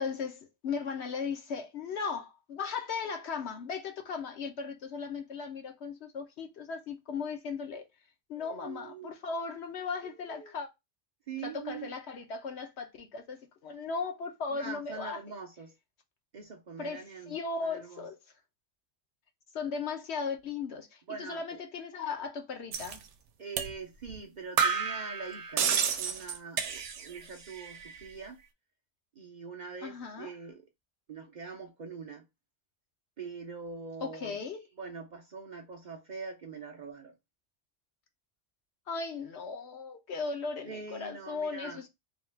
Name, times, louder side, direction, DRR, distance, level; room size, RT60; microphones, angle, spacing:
voice 1, 0.0-7.8 8.3-10.7 11.4-15.2 16.8-18.2 19.5-23.0 29.8-30.3 34.0-34.7 38.9-41.9, left 5 dB, 70° left, 1.0 m, -37 dB
voice 2, 8.4-9.1 10.3-10.5 11.3-11.9 14.5-15.7 16.3-18.0 21.1-21.6 23.4-25.7 26.0-28.4 29.2-30.6 31.1-32.3 33.2-34.4 34.8-37.1 40.6-41.8, right 5 dB, 50° right, 0.6 m, -43 dB
sound 1, 22.7-23.0 23.6-23.7 24.1-24.2 24.6-27.2 27.5-28.1, right 7 dB, 85° right, 0.9 m, -30 dB
3.5 x 2.3 x 3.3 m
omnidirectional pair, 1.2 m